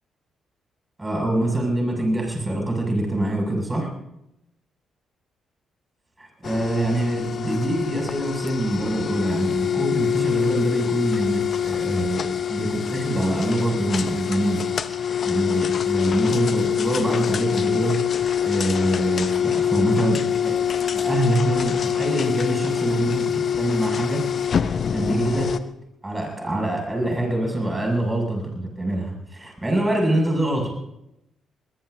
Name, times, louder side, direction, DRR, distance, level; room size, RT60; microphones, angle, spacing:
voice 1, 1.0-3.9 6.2-12.2 12.5-14.6 14.9-18.0 18.4-20.6 20.9-24.2 24.9-25.5 26.0-30.7, right 1 dB, 15° right, 1 dB, 7.0 m, -24 dB
sound 1, 6.4-25.6, left 8 dB, 50° left, 0.8 m, -25 dB
22.5 x 21.0 x 2.8 m, 0.85 s
figure-of-eight pair, 40°, 0 cm